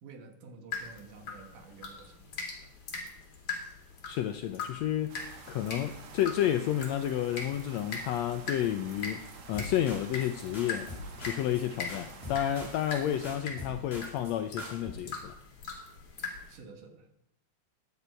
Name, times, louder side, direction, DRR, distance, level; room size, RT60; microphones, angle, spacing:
voice 1, 0.0-2.7 16.2-17.1, right 4 dB, 80° right, 5 dB, 3.0 m, -51 dB
sound 1, 0.7-16.6, left 4 dB, 45° left, 3.4 m, -42 dB
voice 2, 4.1-5.2 5.5-10.9 11.2-15.3, left 11 dB, 85° left, 8 dB, 1.5 m, -31 dB
sound 2, 5.1-13.4, right 5 dB, 55° right, 1.7 m, -49 dB
sound 3, 9.5-10.3 10.5-11.6 11.9-13.0 13.2-14.3 14.6-14.9, left 2 dB, 15° left, 5.4 m, -43 dB
15.0 x 9.8 x 4.5 m, 0.81 s
omnidirectional pair, 3.6 m